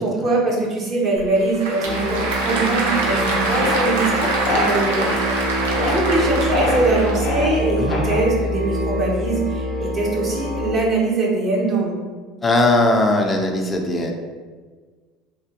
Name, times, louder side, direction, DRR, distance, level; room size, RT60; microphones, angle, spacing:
voice 1, 0.0-12.0, right 2 dB, 40° right, -2 dB, 1.0 m, -22 dB
Applause / Crowd, 1.2-7.3, right 2 dB, 85° right, 0.6 m, -24 dB
sound 1, 1.8-10.7, equal, 10° right, 0.8 m, -25 dB
sound 2, 3.5-3.8 4.5-4.7 5.6-6.0 6.5-6.8 7.2-7.5 7.9-8.4, left 2 dB, 65° left, 0.7 m, -25 dB
voice 2, 12.4-14.1, left 2 dB, 20° left, 2 dB, 0.6 m, -19 dB
3.3 x 2.7 x 2.9 m, 1.5 s
hypercardioid pair, 85°, 0 cm